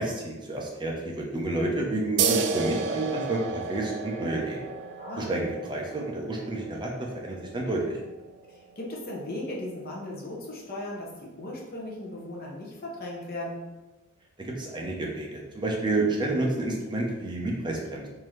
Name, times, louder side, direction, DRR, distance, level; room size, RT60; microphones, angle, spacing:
voice 1, 0.0-4.7 5.2-8.0 14.4-18.1, right 2 dB, 25° right, -2 dB, 0.7 m, -30 dB
sound 1, 2.2-9.3, right 5 dB, 55° right, 0.3 m, -32 dB
voice 2, 5.0-5.3 8.5-13.7, left 1 dB, 50° left, -2 dB, 0.8 m, -37 dB
3.7 x 2.8 x 3.1 m, 1.1 s
head